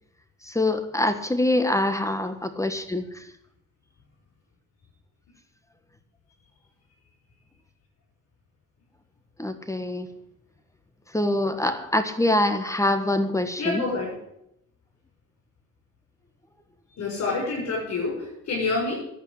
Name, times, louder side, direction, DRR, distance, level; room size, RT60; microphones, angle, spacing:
voice 1, 0.4-3.3 9.4-10.1 11.1-13.8, left 1 dB, 10° left, 9 dB, 1.4 m, -24 dB
voice 2, 13.6-14.2 16.9-19.0, left 3 dB, 60° left, -3 dB, 6.9 m, -27 dB
11.0 x 9.3 x 10.0 m, 0.81 s
cardioid pair, 90°, 30 cm